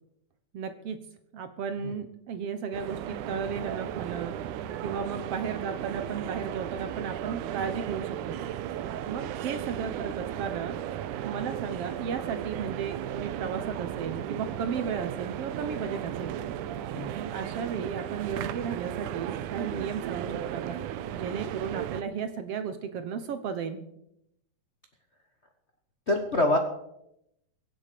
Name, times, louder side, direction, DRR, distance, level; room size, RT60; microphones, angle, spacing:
voice 1, 0.5-1.0 1.3-4.3 4.8-8.4 9.1-10.8 11.2-16.4 17.2-20.8 21.1-23.8, right 6 dB, 65° right, 9 dB, 1.7 m, -34 dB
sound 1, 2.7-22.0, right 11 dB, 85° right, 2.3 m, -35 dB
voice 2, 26.1-26.6, left 1 dB, 70° left, 4 dB, 0.6 m, -25 dB
23.5 x 8.4 x 5.2 m, 0.79 s
omnidirectional pair, 3.5 m